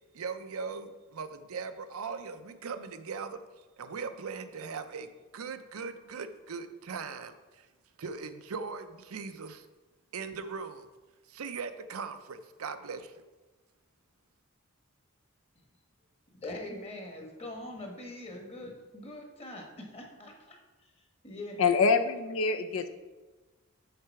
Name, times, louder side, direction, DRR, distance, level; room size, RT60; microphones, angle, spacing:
voice 1, 0.1-3.4 3.8-7.7 8.0-9.7 10.1-10.9 11.3-13.2, right 5 dB, 75° right, 9 dB, 0.6 m, -39 dB
voice 2, 16.3-20.9 21.2-21.6, left 1 dB, 25° left, 1 dB, 1.3 m, -43 dB
voice 3, 21.6-22.9, left 5 dB, 65° left, 8 dB, 0.5 m, -25 dB
6.7 x 6.7 x 4.6 m, 1.2 s
head